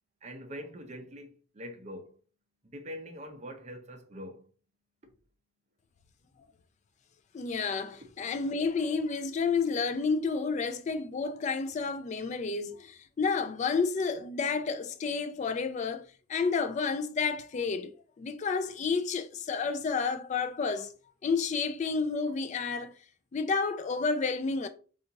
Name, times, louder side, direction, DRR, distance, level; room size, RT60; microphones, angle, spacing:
voice 1, 0.2-2.1 2.6-4.4, equal, 35° right, 0.6 m, -43 dB
voice 2, 7.3-20.9 21.2-22.9 23.3-24.7, left 4 dB, 35° left, 0.3 m, -30 dB
2.8 x 2.5 x 3.7 m
head